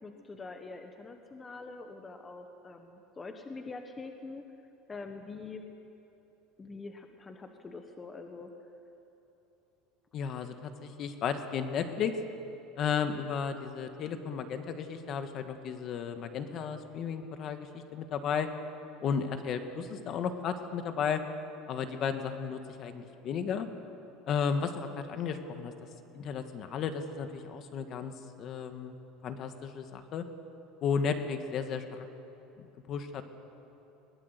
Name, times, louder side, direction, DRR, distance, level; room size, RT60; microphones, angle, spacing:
voice 1, 0.0-4.4 4.9-5.7 6.6-8.5, left 3 dB, 15° left, 5 dB, 1.1 m, -44 dB
voice 2, 10.1-12.1 12.8-18.5 19.0-21.2 21.7-23.7 24.3-25.7 26.1-28.1 28.4-28.9 29.2-30.2 30.8-32.0 32.6-33.3, left 6 dB, 35° left, 8 dB, 1.4 m, -34 dB
21.0 x 18.0 x 8.1 m, 3.0 s
cardioid pair, 160°, 0 cm